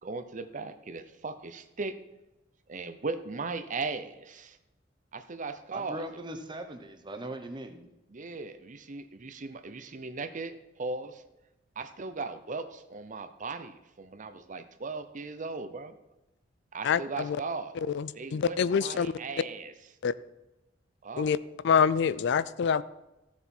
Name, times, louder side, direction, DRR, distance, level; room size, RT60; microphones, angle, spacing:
voice 1, 0.0-2.0 2.7-4.6 5.1-6.0 8.1-11.2 11.8-16.0 16.7-17.7 18.1-19.7 21.0-21.3, right 3 dB, 40° right, 11 dB, 0.7 m, -38 dB
voice 2, 5.7-7.9, right 1 dB, 25° right, 6 dB, 1.1 m, -40 dB
voice 3, 16.8-17.4 17.9-19.1 20.0-20.1 21.2-21.4 21.6-22.8, left 6 dB, 65° left, 17 dB, 0.4 m, -26 dB
14.5 x 7.1 x 4.4 m, 0.97 s
head